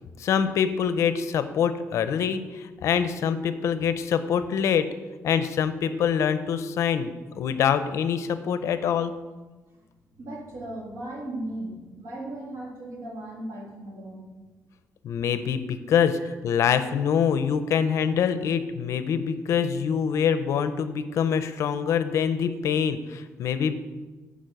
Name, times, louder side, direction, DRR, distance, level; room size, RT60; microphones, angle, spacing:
voice 1, 0.2-4.9 5.2-9.1 15.0-16.2 16.4-23.8, left 7 dB, 65° left, 11 dB, 0.6 m, -25 dB
voice 2, 10.2-14.3 16.2-16.3, right 1 dB, 65° right, -3 dB, 2.7 m, -37 dB
8.8 x 5.2 x 6.6 m, 1.2 s
cardioid pair, 165°, 6 cm